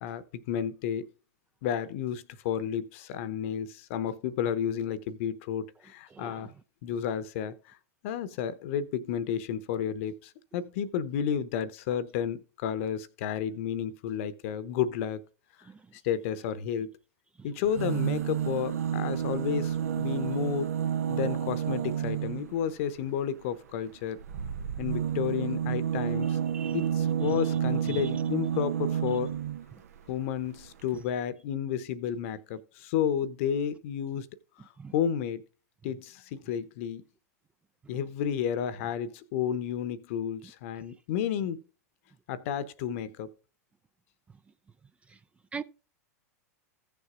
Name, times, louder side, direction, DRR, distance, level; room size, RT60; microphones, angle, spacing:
voice 1, 0.0-1.1 1.6-6.5 6.8-7.8 8.0-15.2 15.9-16.9 17.4-20.7 21.1-24.2 24.8-26.4 26.7-29.3 30.1-34.3 34.9-35.4 35.8-37.0 37.9-41.6 42.3-43.3, left 8 dB, 50° left, 0.9 m, -31 dB
voice 2, 6.2-6.4 26.5-26.7 34.8-34.9 45.5-45.6, right 6 dB, 15° right, 0.4 m, -38 dB
sound 1, 17.6-22.5 24.2-29.6 30.6-30.7 30.9-31.0, right 9 dB, 65° right, 0.8 m, -30 dB
16.0 x 6.9 x 2.5 m
figure-of-eight pair, 90°, 9 cm